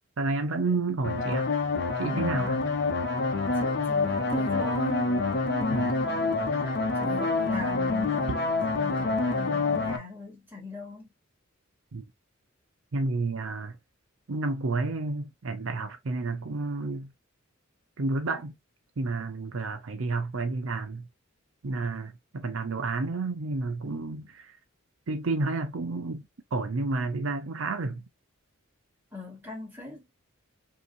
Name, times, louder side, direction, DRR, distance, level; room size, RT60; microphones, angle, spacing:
voice 1, 0.2-1.5 2.0-2.6 5.7-5.9 11.9-12.0 12.9-13.8 14.3-17.1 18.0-18.6 19.0-21.1 21.6-24.5 25.1-26.2 26.5-28.0, right 3 dB, 75° right, 0.6 m, -30 dB
sound 1, 1.0-10.0, left 3 dB, 55° left, 0.9 m, -27 dB
voice 2, 2.1-2.6 3.6-6.7 7.0-11.1 29.1-30.1, left 3 dB, 10° right, 2.4 m, -40 dB
5.3 x 3.0 x 2.5 m
head